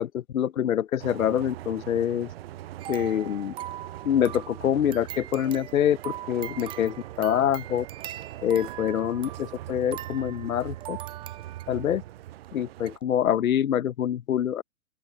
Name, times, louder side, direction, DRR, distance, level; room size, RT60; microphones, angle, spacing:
voice 1, 0.0-2.3 2.9-3.5 4.0-7.8 8.4-11.0 11.7-12.0 12.5-14.6, left 10 dB, 75° left, 0.9 m, -25 dB
sound 1, 1.0-13.0, right 14 dB, 45° right, 0.8 m, -42 dB
sound 2, 2.8-12.0 12.4-12.5 12.9-13.0, right 12 dB, 10° right, 0.6 m, -41 dB
open air
hypercardioid pair, 130°, 43 cm